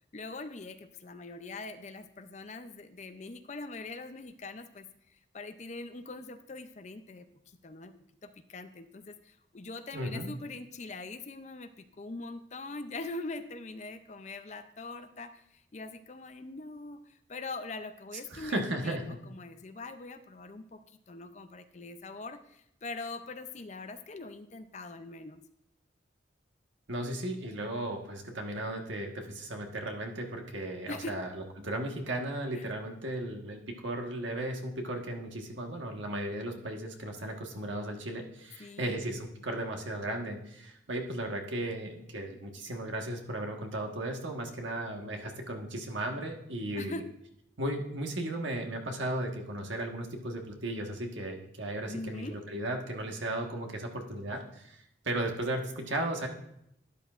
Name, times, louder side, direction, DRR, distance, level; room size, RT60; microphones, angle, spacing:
voice 1, 0.1-7.9 8.2-25.4 30.9-31.2 32.5-32.7 38.6-39.2 46.7-47.0 51.9-52.4, left 3 dB, 35° left, 10 dB, 0.5 m, -43 dB
voice 2, 9.9-10.3 18.3-19.2 26.9-47.0 47.6-56.3, right 1 dB, 75° right, 2 dB, 1.4 m, -35 dB
12.0 x 10.0 x 2.5 m, 0.78 s
head